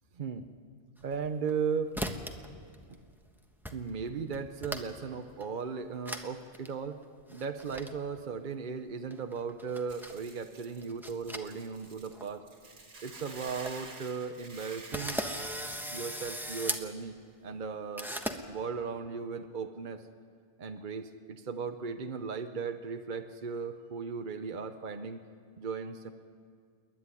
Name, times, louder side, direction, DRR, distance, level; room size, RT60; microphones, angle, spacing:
voice 1, 0.1-0.4 1.0-1.9 3.7-7.0 7.3-12.4 13.0-15.2 15.9-17.1 17.4-18.1 18.5-20.0 20.6-25.2 25.6-26.1, right 5 dB, 50° right, 7 dB, 0.9 m, -37 dB
sound 1, 1.0-1.6 1.9-2.5 2.7-3.3 3.6-3.7 4.1-5.0 5.4-5.5 6.1-6.3 6.5-6.7 7.3-7.9 9.1-10.2 10.8-11.8 12.1-12.3 12.8-12.9 13.2-13.3 13.5-13.7 14.2-14.3 14.9-16.8 18.0-18.4, equal, ahead, 1.1 m, -37 dB
Hiss / Boiling, 9.9-15.5, right 3 dB, 90° right, 2.2 m, -49 dB
28.0 x 11.0 x 9.8 m, 2.1 s
omnidirectional pair, 1.2 m